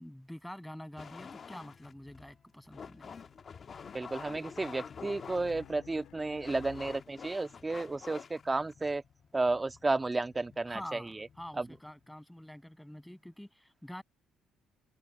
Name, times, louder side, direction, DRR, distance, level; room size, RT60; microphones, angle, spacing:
voice 1, 0.0-3.2 10.7-14.0, left 1 dB, 5° left, 7.0 m, -46 dB
sound 1, 1.0-12.0, left 6 dB, 40° left, 1.3 m, -49 dB
Race car auto racing, 3.1-7.4, left 14 dB, 75° left, 3.6 m, -56 dB
voice 2, 3.9-9.0 9.3-11.3 11.5-11.7, right 3 dB, 20° right, 1.6 m, -32 dB
supercardioid pair, 85°, 0 cm